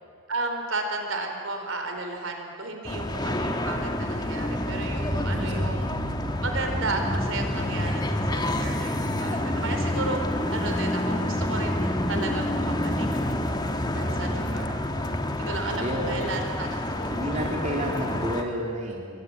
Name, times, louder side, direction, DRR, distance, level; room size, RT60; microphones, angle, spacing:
voice 1, 0.3-5.9 6.4-10.2 10.5-13.1 13.9-14.8 15.5-17.6, right 3 dB, 60° right, 4 dB, 4.5 m, -33 dB
sound 1, 2.9-18.4, left 1 dB, 20° left, 1.7 m, -28 dB
voice 2, 5.3-5.9 14.0-14.4 15.7-16.4 17.1-19.2, right 1 dB, 30° right, -1 dB, 2.8 m, -31 dB
29.0 x 23.0 x 9.0 m, 2.3 s
head